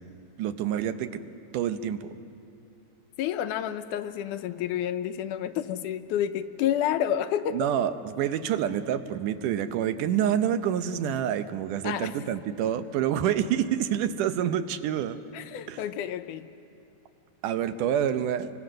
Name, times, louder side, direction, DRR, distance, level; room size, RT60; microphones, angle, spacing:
voice 1, 0.4-1.2 1.5-2.2 7.5-15.2 15.7-15.8 17.4-18.5, right 9 dB, 80° right, 10 dB, 2.4 m, -27 dB
voice 2, 3.2-7.6 11.8-12.1 15.3-16.4, left 10 dB, 80° left, 10 dB, 2.3 m, -29 dB
29.0 x 24.0 x 6.5 m, 2.7 s
omnidirectional pair, 3.6 m